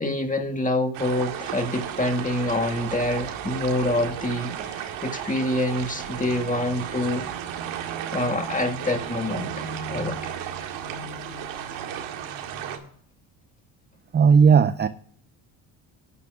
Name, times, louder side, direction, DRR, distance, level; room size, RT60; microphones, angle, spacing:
voice 1, 0.0-7.3 8.1-10.3, left 1 dB, 15° left, 4 dB, 1.8 m, -26 dB
sound 1, 0.9-12.8, right 9 dB, 85° right, 2.0 m, -33 dB
voice 2, 14.1-14.9, right 6 dB, 25° right, 13 dB, 0.4 m, -16 dB
19.0 x 10.0 x 2.4 m, 0.62 s
cardioid pair, 90°, 46 cm